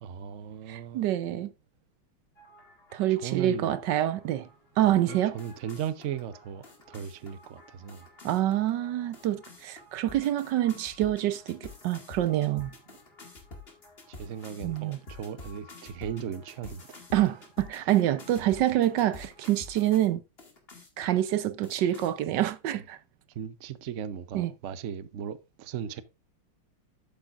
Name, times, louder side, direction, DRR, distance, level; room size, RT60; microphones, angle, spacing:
voice 1, 0.0-1.1 3.1-3.8 4.8-8.1 12.5-13.0 14.1-17.0 17.8-17.9 23.3-26.0, right 9 dB, 85° right, 0.6 m, -37 dB
voice 2, 0.7-1.5 2.9-4.5 4.8-5.4 8.2-12.7 14.6-15.0 17.1-20.2 21.0-23.0 24.3-24.5, right 13 dB, 65° right, 1.2 m, -26 dB
sound 1, 2.4-20.1 20.4-21.2 21.6-22.1, left 2 dB, 30° left, 2.2 m, -50 dB
12.0 x 8.2 x 2.5 m
omnidirectional pair, 2.3 m